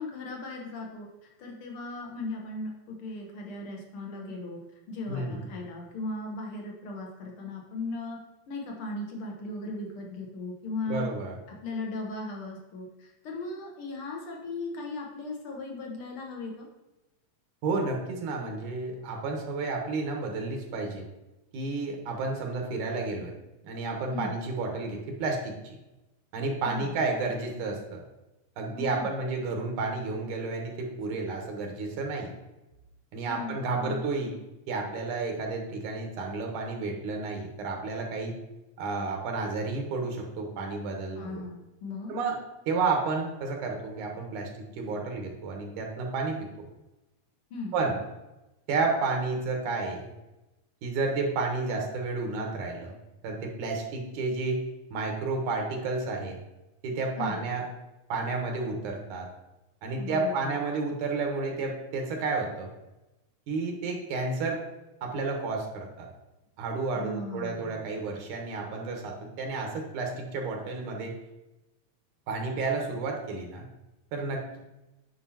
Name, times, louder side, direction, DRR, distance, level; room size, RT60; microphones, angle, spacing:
voice 1, 0.0-4.6 4.9-8.2 8.5-11.1 11.5-16.7 24.1-24.3 26.6-27.0 28.7-29.1 33.2-34.0 41.2-42.2 47.5-47.8 57.2-57.4 59.9-60.5 66.9-67.8, left 2 dB, 60° left, 0 dB, 1.5 m, -37 dB
voice 2, 5.1-5.5 10.9-11.3 17.6-21.0 21.5-23.3 23.6-25.7 26.3-28.0 28.6-32.3 33.1-34.3 34.7-38.3 38.8-41.4 42.1-42.4 42.7-44.5 44.8-46.4 47.7-48.0 48.7-50.1 50.8-53.0 53.2-54.6 54.9-56.4 56.8-57.6 58.1-59.3 59.8-62.7 63.5-64.6 65.0-66.1 66.6-71.1 72.3-73.6 74.1-74.6, right 3 dB, 80° right, 2 dB, 2.5 m, -31 dB
9.5 x 5.4 x 2.8 m, 0.98 s
omnidirectional pair, 3.5 m